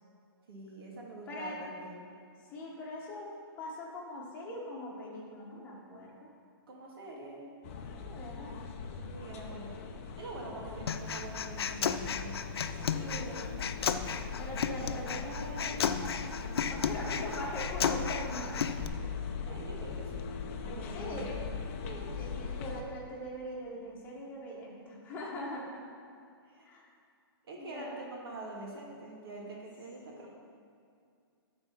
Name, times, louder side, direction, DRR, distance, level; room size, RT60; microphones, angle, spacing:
voice 1, 0.5-2.0 6.7-7.4 9.0-9.8 10.2-12.6 16.3-16.8 19.4-20.2 20.6-21.4 21.8-22.1 25.1-25.2 26.5-26.7 27.5-30.3, right 2 dB, 70° right, -2 dB, 2.2 m, -45 dB
voice 2, 1.3-1.6 2.5-3.3 3.6-6.3 8.0-8.6 10.4-11.0 12.9-13.6 14.4-16.3 16.6-18.5 20.9-21.3 22.1-25.8 26.6-26.9 27.6-28.1 30.1-30.3, left 1 dB, 15° left, -4 dB, 1.5 m, -42 dB
sound 1, 7.6-22.8, left 5 dB, 35° left, 0.6 m, -40 dB
Human voice, 10.9-18.9, left 7 dB, 85° left, 0.5 m, -34 dB
11.0 x 4.4 x 5.9 m, 2.3 s
hypercardioid pair, 165°, 13 cm